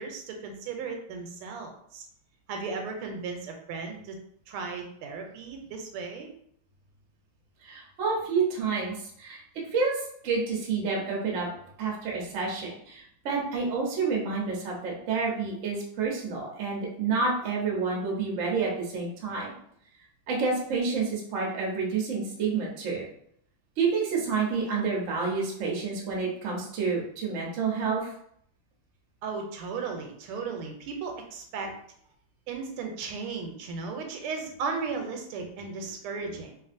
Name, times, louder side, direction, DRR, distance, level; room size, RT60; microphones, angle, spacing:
voice 1, 0.0-2.0 2.5-4.2 4.5-6.3 29.2-31.7 32.5-36.6, right 4 dB, 85° right, 3 dB, 1.5 m, -35 dB
voice 2, 7.6-9.4 9.7-11.5 11.8-19.5 20.3-23.0 23.8-28.1, right 4 dB, 60° right, -2 dB, 0.8 m, -29 dB
3.3 x 2.5 x 2.5 m, 0.66 s
omnidirectional pair, 2.4 m